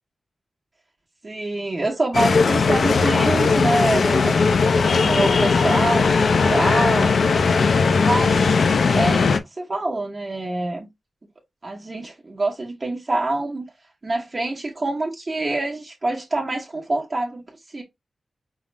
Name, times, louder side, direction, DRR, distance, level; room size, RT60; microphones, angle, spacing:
voice 1, 1.2-4.4 5.0-7.1 8.0-8.5 8.9-10.9 11.6-13.7 14.0-17.4 17.7-17.8, right 2 dB, 30° right, 1.0 m, -25 dB
sound 1, 2.1-9.4, left 4 dB, 65° left, 0.5 m, -18 dB
5.6 x 2.5 x 3.1 m
wide cardioid pair, 150°, 0 cm